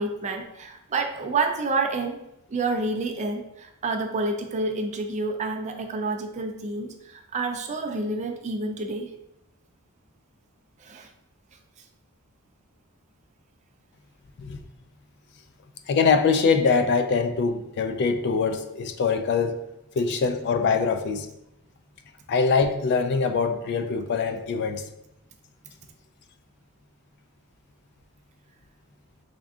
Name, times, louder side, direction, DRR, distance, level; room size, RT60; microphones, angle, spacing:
voice 1, 0.0-2.2 2.5-9.1 10.8-11.1, right 3 dB, 30° right, 4 dB, 0.4 m, -29 dB
voice 2, 15.9-19.6 19.9-21.3 22.3-24.8, left 5 dB, 50° left, 8 dB, 0.3 m, -23 dB
3.5 x 2.5 x 3.5 m, 0.86 s
head